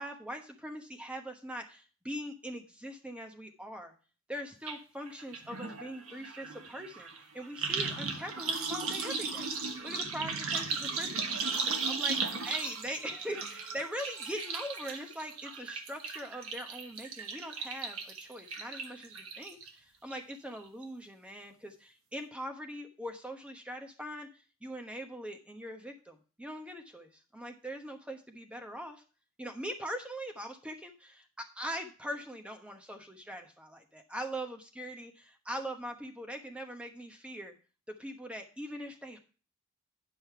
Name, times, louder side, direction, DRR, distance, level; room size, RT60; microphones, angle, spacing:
voice 1, 0.0-3.9 4.3-7.1 7.3-9.5 9.8-11.3 11.9-12.2 12.4-24.3 24.6-29.0 29.4-37.6 38.0-39.2, equal, 5° right, 4 dB, 1.0 m, -42 dB
sound 1, 4.7-4.8 5.1-19.7 20.1-20.6 20.8-20.9, right 4 dB, 75° right, 1.3 m, -36 dB
9.9 x 5.5 x 4.5 m, 0.36 s
head